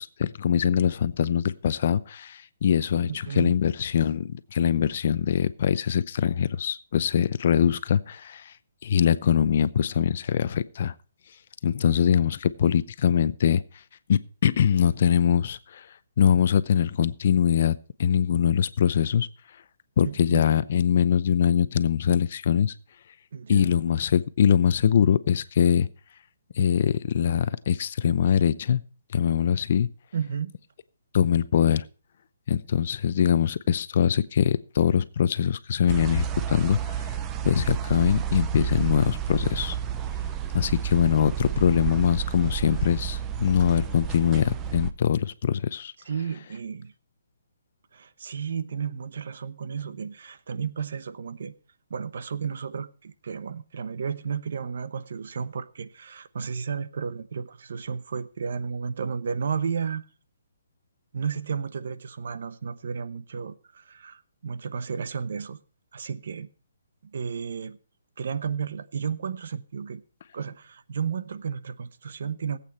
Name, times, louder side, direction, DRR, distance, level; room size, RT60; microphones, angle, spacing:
voice 1, 0.0-3.1 3.4-8.4 8.8-10.9 11.6-13.6 14.1-15.8 16.2-19.3 20.0-22.7 23.5-25.9 26.6-28.8 29.1-29.9 31.1-31.8 32.5-37.0 37.4-39.8 40.5-45.9, left 8 dB, 45° left, 0.6 m, -23 dB
voice 2, 3.1-3.6 20.0-20.5 23.3-23.8 30.1-30.5 46.0-46.9 47.9-51.5 51.9-60.0 61.1-65.6 65.9-66.5 67.0-67.8 68.2-70.0 70.3-72.6, right 6 dB, 60° right, 0.9 m, -33 dB
sound 1, 35.9-44.9, right 10 dB, 15° right, 0.7 m, -31 dB
18.0 x 8.4 x 4.3 m
hypercardioid pair, 165°, 0 cm